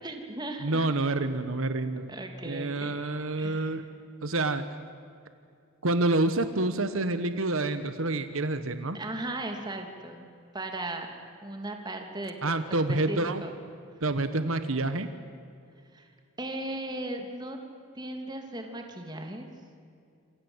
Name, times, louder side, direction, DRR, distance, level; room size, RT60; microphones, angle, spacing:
voice 1, 0.0-0.8 2.1-2.9 3.4-3.7 8.9-10.2 10.5-11.1 11.4-12.6 12.9-13.5 15.9-16.1 16.4-17.6 17.9-19.5, right 1 dB, 20° right, 4 dB, 2.9 m, -37 dB
voice 2, 0.6-2.1 2.4-3.8 4.2-4.6 5.8-9.0 12.4-13.4 14.0-15.1, right 2 dB, 75° right, 10 dB, 1.3 m, -28 dB
27.5 x 26.5 x 8.1 m, 2.5 s
head